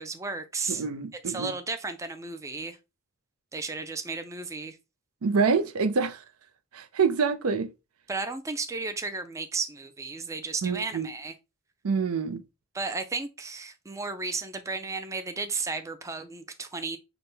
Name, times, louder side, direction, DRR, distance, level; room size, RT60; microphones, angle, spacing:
voice 1, 0.0-0.8 1.3-2.8 3.5-4.8 8.1-11.3 12.7-17.0, right 4 dB, 15° right, 0.3 m, -34 dB
voice 2, 0.7-1.5 5.2-6.2 6.7-7.7 10.6-11.1 11.8-12.4, right 5 dB, 85° right, 0.5 m, -26 dB
6.0 x 2.2 x 3.3 m
head